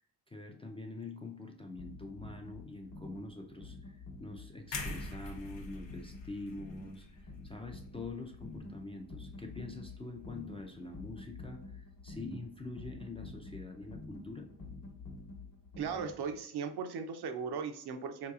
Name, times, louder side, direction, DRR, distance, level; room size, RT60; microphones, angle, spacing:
voice 1, 0.3-14.5, left 2 dB, 15° left, 2 dB, 0.3 m, -45 dB
sound 1, 1.8-16.4, left 3 dB, 55° left, 1.0 m, -49 dB
sound 2, 4.7-8.7 9.1-9.3, left 3 dB, 80° left, 0.8 m, -44 dB
voice 2, 15.8-18.3, right 6 dB, 65° right, 8 dB, 0.5 m, -37 dB
3.8 x 2.9 x 2.3 m, 0.63 s
cardioid pair, 60°, 43 cm